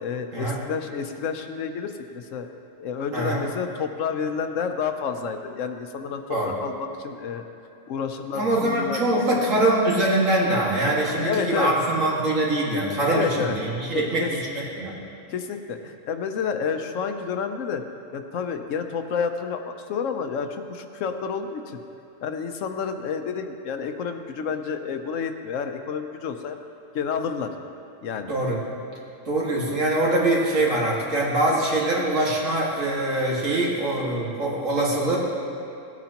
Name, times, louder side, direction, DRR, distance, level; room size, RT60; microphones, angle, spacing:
voice 1, 0.0-2.5 2.8-7.4 7.9-9.5 11.1-11.7 12.8-13.6 13.9-14.3 15.3-17.8 18.1-21.8 22.2-26.6 26.9-27.5 28.0-28.3, left 6 dB, 80° left, 7 dB, 1.1 m, -30 dB
voice 2, 3.1-3.4 6.3-6.5 8.3-15.0 28.3-28.6 29.3-35.2, right 1 dB, 90° right, -5 dB, 2.3 m, -23 dB
17.0 x 9.2 x 2.9 m, 2.8 s
omnidirectional pair, 1.3 m